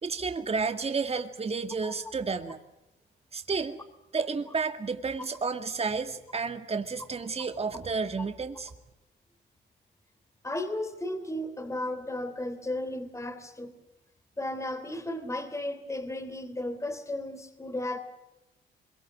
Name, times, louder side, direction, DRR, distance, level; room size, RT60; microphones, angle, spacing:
voice 1, 0.0-2.6 3.3-3.8 4.1-8.7, right 4 dB, 30° right, 2.3 m, -31 dB
voice 2, 10.4-13.7 14.4-18.0, left 1 dB, 15° left, 3.4 m, -34 dB
25.0 x 23.5 x 7.6 m
cardioid pair, 90°, 20 cm